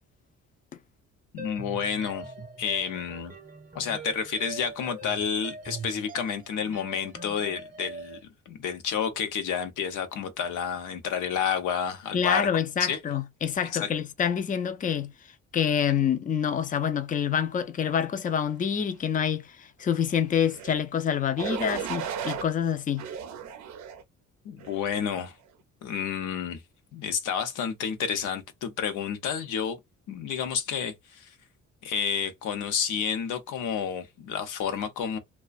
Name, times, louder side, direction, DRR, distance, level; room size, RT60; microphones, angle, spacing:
voice 1, 1.3-2.3 2.6-3.3 3.7-8.2 8.5-12.5 12.8-13.0 13.7-13.9 24.4-25.3 25.8-26.6 26.9-29.8 30.1-31.3 31.8-35.2, left 7 dB, 80° left, 0.7 m, -30 dB
sound 1, 1.4-8.2, right 3 dB, 25° right, 0.8 m, -42 dB
voice 2, 12.1-15.1 15.5-23.1, left 8 dB, 25° left, 0.4 m, -27 dB
sound 2, 20.5-20.8 21.4-22.4 23.0-24.0 24.6-25.0, right 8 dB, 65° right, 0.5 m, -35 dB
2.4 x 2.2 x 2.3 m
cardioid pair, 90°, 30 cm